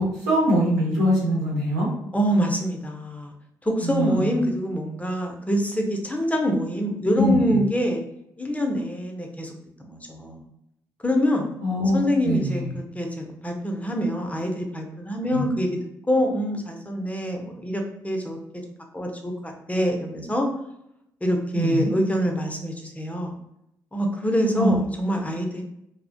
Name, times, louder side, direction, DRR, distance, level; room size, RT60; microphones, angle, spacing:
voice 1, 0.0-1.9 3.8-4.3 7.2-7.6 11.6-12.0 12.2-12.7 15.3-15.5 21.5-21.9 24.5-24.8, equal, 85° right, -7 dB, 1.0 m, -23 dB
voice 2, 2.1-3.3 3.6-8.0 8.4-9.5 9.8-10.4 11.0-11.5 11.9-15.7 16.1-18.4 18.9-20.5 21.2-23.3 23.9-25.6, equal, 15° left, 2 dB, 0.6 m, -25 dB
2.3 x 2.1 x 2.6 m, 0.80 s
hypercardioid pair, 45°, 10 cm